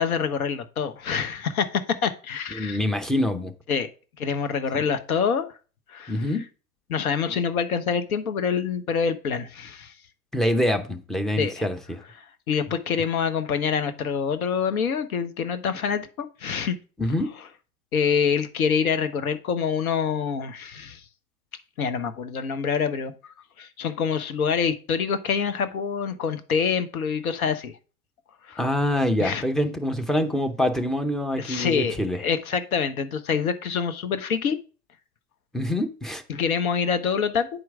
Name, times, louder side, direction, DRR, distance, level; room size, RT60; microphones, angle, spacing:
voice 1, 0.0-2.8 3.7-3.9 4.2-5.5 5.9-6.2 6.9-9.9 11.4-11.6 12.5-16.1 16.4-16.8 17.9-21.0 21.8-23.1 23.6-27.8 28.5-28.6 29.2-29.4 31.4-34.6 36.3-37.5, left 6 dB, 70° left, 1.1 m, -26 dB
voice 2, 2.5-3.5 4.7-4.8 6.1-6.5 10.3-12.0 17.0-17.3 28.6-32.2 35.5-36.2, left 1 dB, ahead, 0.5 m, -25 dB
9.5 x 4.5 x 3.6 m
figure-of-eight pair, 100°, 45 cm